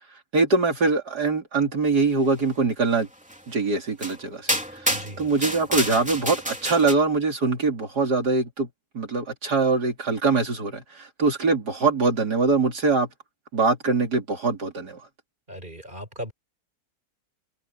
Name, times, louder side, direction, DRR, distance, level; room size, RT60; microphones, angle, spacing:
voice 1, 0.3-3.1 3.5-4.9 5.2-8.7 9.0-13.1 13.5-15.0, right 3 dB, 80° right, 3.6 m, -23 dB
sound 1, 3.3-3.4 4.0-4.2 4.5-6.9, equal, 5° right, 3.2 m, -28 dB
voice 2, 4.9-5.3 15.5-16.3, equal, 30° right, 6.8 m, -37 dB
omnidirectional pair, 1.7 m